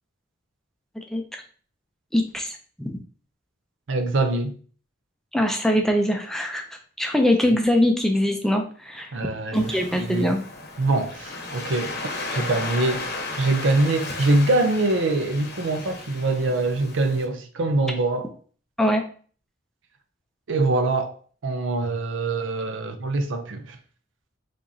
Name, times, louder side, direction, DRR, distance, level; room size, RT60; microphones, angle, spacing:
voice 1, 1.1-1.4 2.1-3.0 5.3-6.6 7.0-9.1 9.5-10.4 18.8-19.0, left 1 dB, ahead, 0.4 m, -22 dB
voice 2, 3.9-4.6 9.1-10.3 10.8-18.3 20.5-21.1 21.4-23.8, right 2 dB, 70° right, 0.6 m, -24 dB
Waves surf, 9.5-17.3, left 3 dB, 55° left, 0.8 m, -35 dB
4.9 x 2.9 x 2.7 m
head